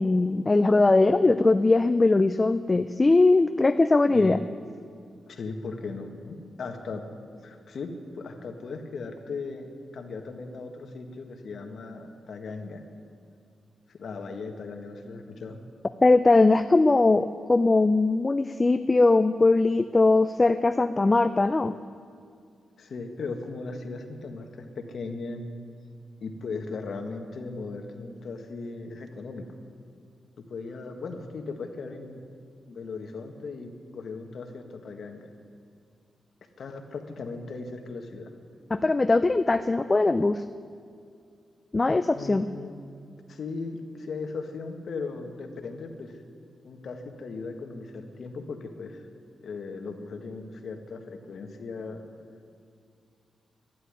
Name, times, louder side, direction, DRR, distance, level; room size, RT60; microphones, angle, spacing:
voice 1, 0.0-4.4 16.0-21.7 38.7-40.4 41.7-42.5, left 3 dB, 20° left, 11 dB, 0.4 m, -20 dB
voice 2, 5.3-7.0 7.4-9.7 9.9-12.8 13.9-15.6 22.8-25.4 26.2-29.5 30.4-32.3 32.7-35.3 36.6-38.3 42.1-42.7 43.3-46.2 46.6-49.0 49.4-52.0, left 4 dB, 60° left, 4 dB, 1.6 m, -37 dB
12.5 x 11.5 x 9.8 m, 2.4 s
wide cardioid pair, 145°, 0 cm